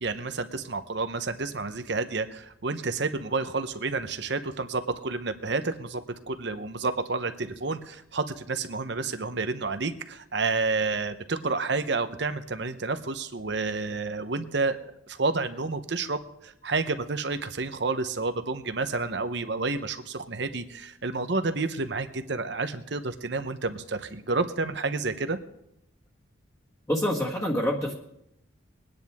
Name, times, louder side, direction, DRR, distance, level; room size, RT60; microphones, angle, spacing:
voice 1, 0.0-6.0 6.3-25.4, right 3 dB, 60° right, 10 dB, 0.8 m, -30 dB
voice 2, 26.9-27.9, left 1 dB, 15° left, -4 dB, 1.6 m, -26 dB
21.5 x 9.8 x 3.6 m, 0.80 s
head